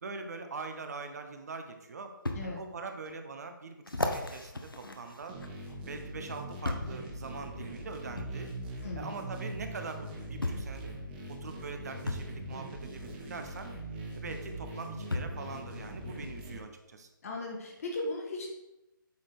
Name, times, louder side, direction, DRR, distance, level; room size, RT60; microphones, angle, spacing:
voice 1, 0.0-2.2 2.4-5.4 5.9-8.5 9.0-10.9 11.3-13.7 14.1-17.1, right 4 dB, 50° right, 6 dB, 0.9 m, -42 dB
sound 1, 2.3-2.4 3.1-3.2 3.9-5.8 6.6-7.0 8.2-8.3 9.6-9.7 10.4-10.8 12.1-12.3 13.9-14.0 15.1-15.4 16.2-16.3, left 2 dB, 80° left, 1.0 m, -35 dB
sound 2, 5.3-16.6, right 1 dB, 25° right, 1.4 m, -42 dB
voice 2, 8.8-9.2 17.2-18.5, left 2 dB, 40° left, 0 dB, 1.7 m, -37 dB
8.4 x 4.2 x 4.8 m, 0.96 s
figure-of-eight pair, 140°, 11 cm